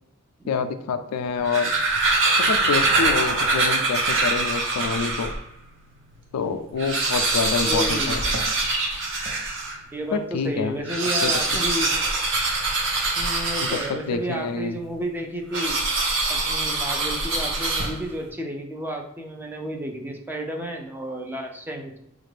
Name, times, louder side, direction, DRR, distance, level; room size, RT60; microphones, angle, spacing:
voice 1, 0.5-1.7 2.4-5.3 6.3-8.2 10.1-10.8 11.2-11.3 13.6-14.8, left 5 dB, 90° left, 9 dB, 0.4 m, -27 dB
sound 1, 1.3-5.4 6.0-6.1 6.3-6.4 6.7-9.8 10.8-14.2 15.5-18.2, right 3 dB, 60° right, 0.7 m, -24 dB
voice 2, 7.6-8.2 9.9-11.9 13.2-15.8 16.3-22.0, right 1 dB, 10° right, 2 dB, 0.4 m, -31 dB
4.2 x 2.5 x 3.2 m, 0.78 s
head